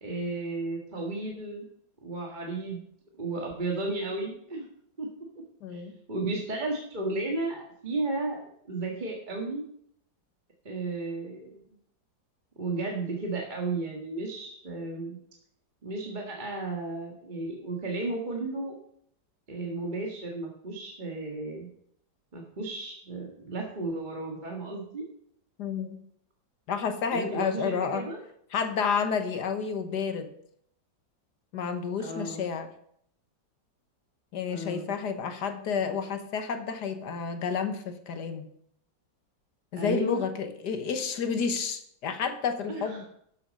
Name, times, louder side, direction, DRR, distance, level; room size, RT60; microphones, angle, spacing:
voice 1, 0.0-1.6 2.0-2.9 3.2-4.7 5.0-5.1 5.4-5.5 5.7-5.8 6.1-8.4 8.7-9.6 10.7-11.6 12.6-15.2 15.8-18.8 19.5-21.7 22.3-25.0 27.1-28.2 32.0-32.5 34.5-34.9 39.7-40.3 42.7-43.1, right 2 dB, 25° right, 0 dB, 1.8 m, -33 dB
voice 2, 5.6-5.9 25.6-26.0 26.7-28.1 28.5-30.3 31.5-32.7 34.3-38.4 39.7-43.1, left 6 dB, 65° left, 9 dB, 1.7 m, -30 dB
13.0 x 7.3 x 5.3 m, 0.68 s
omnidirectional pair, 2.0 m